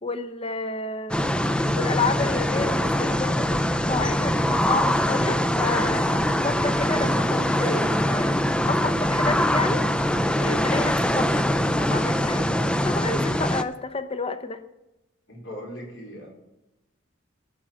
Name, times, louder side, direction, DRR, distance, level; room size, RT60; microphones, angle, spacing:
voice 1, 0.0-1.3 1.8-8.4 8.6-9.9 10.4-14.6, left 3 dB, 30° left, 10 dB, 0.8 m, -30 dB
sound 1, 1.1-13.6, equal, 5° left, 0.4 m, -23 dB
voice 2, 15.3-16.3, equal, 65° left, -1 dB, 4.2 m, -39 dB
14.5 x 5.8 x 7.5 m, 0.95 s
head